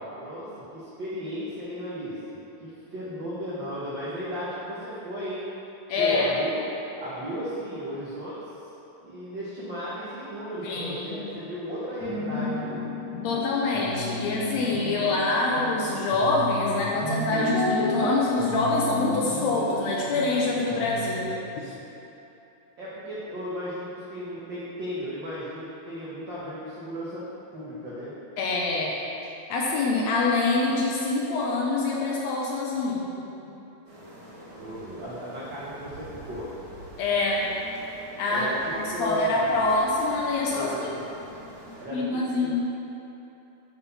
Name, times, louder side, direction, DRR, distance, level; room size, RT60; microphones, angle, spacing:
voice 1, 0.0-5.4 5.9-6.6 7.0-8.4 9.0-12.6 22.8-28.1 34.6-36.5 38.3-39.7 40.5-41.2 41.8-42.5, equal, 80° right, -9 dB, 1.0 m, -35 dB
voice 2, 5.9-6.3 10.6-11.3 13.1-21.7 28.4-28.9 29.5-33.1 37.0-37.5 38.2-38.5 38.8-40.9 41.9-42.5, left 3 dB, 75° left, -3 dB, 1.7 m, -25 dB
sound 1, 12.0-21.2, left 1 dB, 50° left, 1.5 m, -33 dB
sound 2, 33.8-41.8, right 1 dB, 50° right, 2.3 m, -46 dB
9.6 x 3.8 x 4.1 m, 2.9 s
omnidirectional pair, 3.6 m